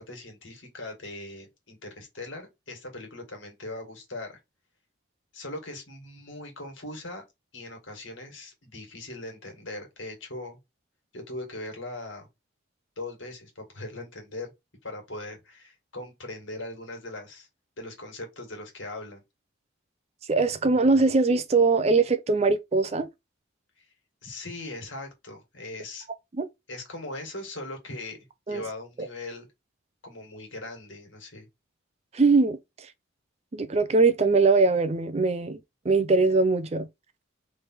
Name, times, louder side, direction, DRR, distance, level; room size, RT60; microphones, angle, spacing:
voice 1, 0.0-4.4 5.3-7.2 7.5-10.6 11.1-12.3 13.0-14.5 14.8-17.5 17.8-19.2 23.8-23.9 24.2-26.1 26.7-28.2 28.5-29.5 30.0-31.5, left 2 dB, 75° left, 2.0 m, -40 dB
voice 2, 20.3-23.1 26.4-26.5 28.5-28.6 32.1-32.6 33.5-35.6 35.8-36.9, right 3 dB, 30° right, 0.4 m, -21 dB
3.3 x 3.3 x 4.4 m
head